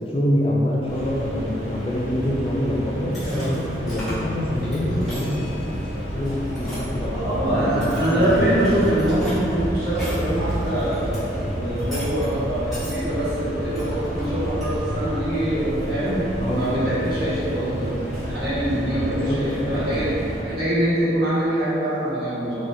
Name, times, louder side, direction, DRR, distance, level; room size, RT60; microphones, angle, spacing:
voice 1, 0.0-3.5 3.9-5.8 6.1-8.6 16.4-16.7 19.1-19.4 19.7-19.8, left 1 dB, 30° left, -3 dB, 0.3 m, -26 dB
sound 1, 0.8-20.4, equal, 40° right, 0.9 m, -30 dB
sound 2, 3.1-4.3 4.6-5.3 6.6-6.8 7.6-11.2 11.8-12.3 12.7-12.9 13.7-14.8, equal, ahead, 1.4 m, -38 dB
voice 2, 3.2-3.6 7.1-17.9 18.1-20.1 20.4-22.7, right 1 dB, 60° right, -11 dB, 1.3 m, -24 dB
3.8 x 3.0 x 2.6 m, 2.9 s
head